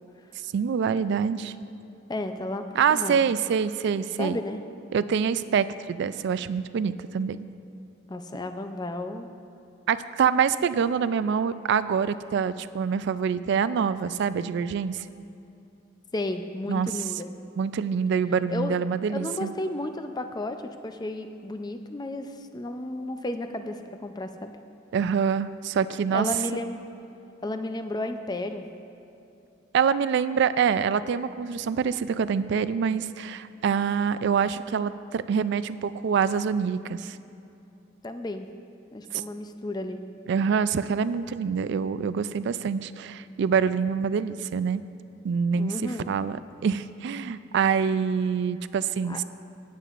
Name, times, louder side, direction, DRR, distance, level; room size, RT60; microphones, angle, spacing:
voice 1, 0.4-1.5 2.8-4.4 4.9-7.4 9.9-15.0 16.7-16.9 17.6-19.5 24.9-26.3 29.7-37.2 39.1-39.2 40.3-44.8 45.2-46.4 46.6-49.2, right 6 dB, 60° right, 15 dB, 0.3 m, -25 dB
voice 2, 2.1-3.2 4.2-4.6 8.1-9.3 16.1-17.3 18.5-18.7 19.1-24.5 26.1-26.8 27.4-28.7 38.0-38.5 38.9-40.0 45.5-46.1 49.0-49.2, left 1 dB, 20° left, 7 dB, 0.4 m, -33 dB
17.5 x 8.3 x 2.5 m, 2.7 s
head